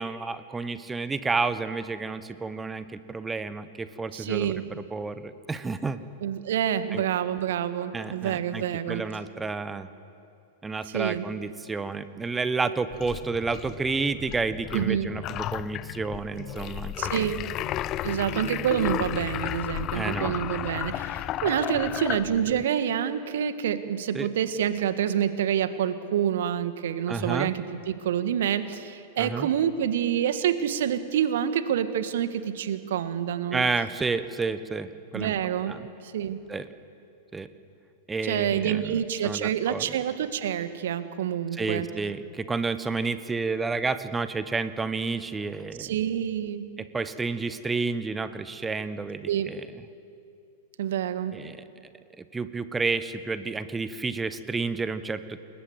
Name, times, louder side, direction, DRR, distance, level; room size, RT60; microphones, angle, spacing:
voice 1, 0.0-6.0 6.9-7.0 7.9-9.9 10.6-17.5 19.9-20.3 24.1-24.3 27.1-27.5 29.2-29.5 33.5-35.3 35.7-35.9 36.5-36.7 37.3-37.5 38.1-39.9 41.5-45.9 46.8-49.7 51.3-51.6 52.2-55.4, right 4 dB, 10° right, 12 dB, 1.3 m, -30 dB
voice 2, 4.1-4.6 6.2-9.0 10.9-11.2 14.7-15.1 17.0-17.4 18.0-27.6 27.9-33.6 35.1-35.7 36.0-36.4 38.2-41.9 45.8-46.7 49.3-49.5 50.8-51.3, right 9 dB, 60° right, 11 dB, 1.7 m, -27 dB
sound 1, 12.9-22.6, left 13 dB, 35° left, 0.5 m, -33 dB
29.0 x 21.5 x 8.0 m, 2.6 s
figure-of-eight pair, 95°, 0 cm